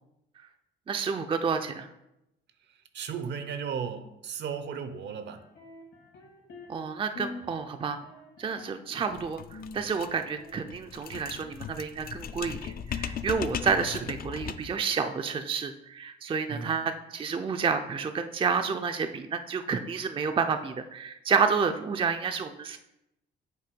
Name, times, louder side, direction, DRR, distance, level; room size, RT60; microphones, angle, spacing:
voice 1, 0.9-1.9 6.7-8.0 8.4-22.8, right 5 dB, 25° right, 0.4 m, -30 dB
voice 2, 2.9-5.4 16.5-16.7, right 6 dB, 60° right, 0.7 m, -35 dB
sound 1, 5.3-6.8 7.1-7.5 7.8-9.2 9.5-10.5, left 2 dB, 75° left, 2.0 m, -45 dB
sound 2, 9.1-14.8, left 8 dB, 50° left, 0.4 m, -38 dB
7.6 x 2.7 x 5.1 m
cardioid pair, 90°, 20 cm